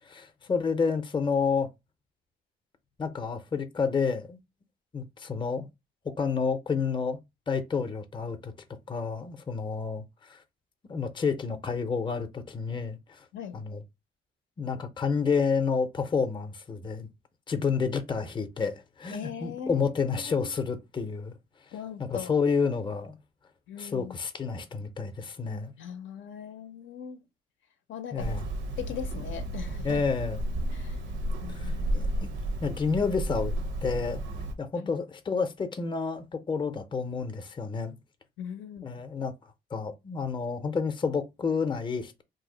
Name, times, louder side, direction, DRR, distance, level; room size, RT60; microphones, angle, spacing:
voice 1, 0.0-1.7 3.0-4.4 4.9-5.7 6.2-7.2 7.5-8.5 8.9-10.4 10.9-13.2 13.5-13.8 14.6-17.1 17.5-21.3 22.0-23.2 23.8-25.7 28.1-28.5 29.8-30.4 31.5-32.1 32.6-33.5 33.8-34.2 34.6-37.9 38.8-39.3 39.7-42.2, left 5 dB, 25° left, 0.6 m, -29 dB
voice 2, 19.1-19.9 20.3-20.5 21.7-22.3 23.7-24.1 25.8-27.2 27.9-28.3 28.8-30.0 30.7-31.0 31.4-32.1 34.8-34.9 38.4-39.0, left 8 dB, 75° left, 0.6 m, -40 dB
Hammer, 28.2-34.5, right 1 dB, 70° right, 0.6 m, -32 dB
2.7 x 2.0 x 3.8 m
cardioid pair, 90°, 20 cm